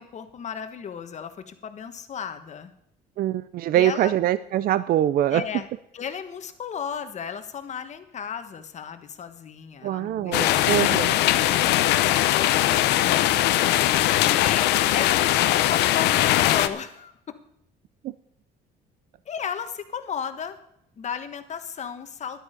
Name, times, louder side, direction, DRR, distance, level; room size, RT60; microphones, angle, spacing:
voice 1, 0.0-2.7 3.7-4.1 5.3-5.7 5.9-13.4 14.2-17.1 19.2-20.6 21.0-22.4, left 7 dB, 45° left, 9 dB, 1.4 m, -35 dB
voice 2, 3.2-5.4 9.8-11.1 18.0-18.1, right 12 dB, 60° right, 15 dB, 0.5 m, -23 dB
sound 1, 10.3-16.7, left 14 dB, 85° left, 0.8 m, -20 dB
13.0 x 11.0 x 5.1 m, 0.76 s
cardioid pair, 110°, 17 cm